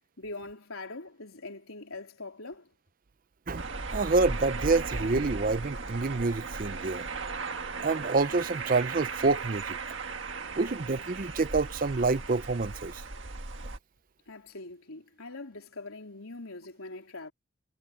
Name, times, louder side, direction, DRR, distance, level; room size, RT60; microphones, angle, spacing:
voice 1, 0.2-2.7 14.3-17.3, left 2 dB, 80° left, 3.9 m, -42 dB
sound 1, 3.6-13.8, right 4 dB, 60° right, 1.7 m, -37 dB
voice 2, 3.9-7.0 7.8-9.8 10.6-13.0, right 3 dB, 40° right, 0.5 m, -27 dB
head